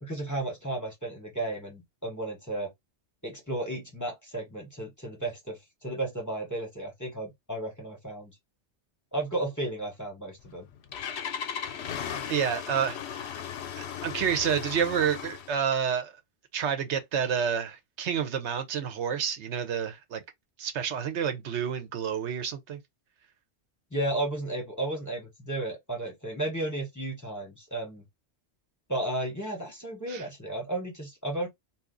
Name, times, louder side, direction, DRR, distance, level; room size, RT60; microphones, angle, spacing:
voice 1, 0.0-2.7 3.2-8.3 9.1-10.7 23.9-28.0 28.9-31.5, right 1 dB, 15° left, 1.1 m, -33 dB
Engine starting, 10.4-15.6, left 8 dB, 70° left, 0.9 m, -36 dB
voice 2, 12.3-13.3 13.8-16.1 16.5-20.2 20.6-22.8 30.1-30.2, right 7 dB, 80° right, 1.0 m, -29 dB
2.8 x 2.3 x 3.7 m
omnidirectional pair, 1.2 m